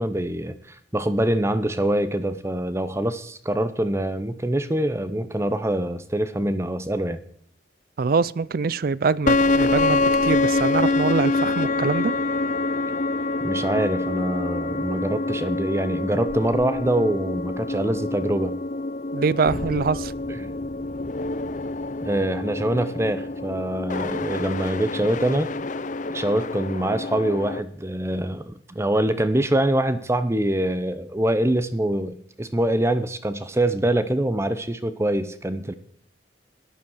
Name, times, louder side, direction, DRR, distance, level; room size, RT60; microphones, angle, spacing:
voice 1, 0.0-7.2 13.4-18.6 20.3-20.5 22.0-25.5 26.1-35.7, right 1 dB, 15° right, 0.8 m, -24 dB
voice 2, 8.0-12.1 19.1-20.1, right 4 dB, 50° right, 0.4 m, -24 dB
Dflat augment, 9.3-27.6, left 2 dB, 40° left, 0.6 m, -26 dB
13.0 x 10.5 x 6.3 m
head